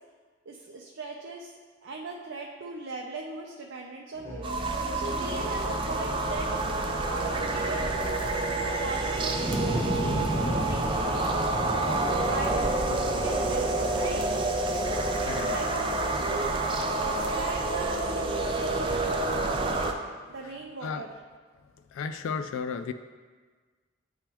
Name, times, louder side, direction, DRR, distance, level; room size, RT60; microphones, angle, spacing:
voice 1, 0.5-1.5 1.8-4.6 4.9-6.6 7.1-7.9 8.5-9.9 10.4-11.2 11.6-14.2 14.7-15.1 15.5-16.6 16.9-19.8 20.3-21.1, right 3 dB, 80° right, -1 dB, 0.6 m, -38 dB
Musical instrument, 4.1-19.2, left 1 dB, 40° left, 1.8 m, -39 dB
sound 1, 4.4-19.9, right 2 dB, 25° right, 0.4 m, -29 dB
sound 2, 9.3-16.0, equal, 20° left, 1.2 m, -33 dB
voice 2, 15.2-15.9 20.8-21.0 21.9-22.9, left 5 dB, 90° left, 9 dB, 0.3 m, -34 dB
9.9 x 3.5 x 3.0 m, 1.5 s
head